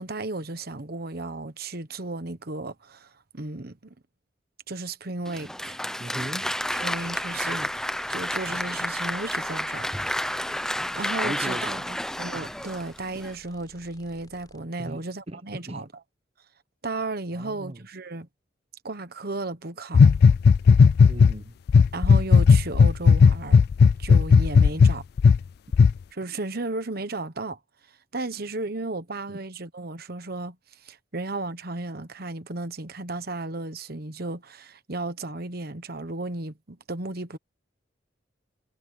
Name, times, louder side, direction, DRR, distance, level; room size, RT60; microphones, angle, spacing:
voice 1, 0.0-3.9 4.7-5.8 6.7-7.7 8.1-9.9 10.5-11.7 12.2-15.9 16.8-18.3 18.8-20.1 21.9-23.6 24.0-25.0 26.1-27.6 27.9-37.4, right 2 dB, 55° right, 1.2 m, -34 dB
Applause, 5.3-13.4, left 1 dB, 5° left, 0.9 m, -30 dB
voice 2, 6.0-6.5 11.2-12.0 14.8-15.8 17.3-17.8 21.1-21.5 29.3-29.4, right 1 dB, 30° right, 0.9 m, -38 dB
sound 1, 6.6-14.6, left 1 dB, 20° left, 5.1 m, -55 dB
sound 2, 19.9-21.3 21.7-25.4 25.7-25.9, left 5 dB, 55° left, 0.3 m, -15 dB
head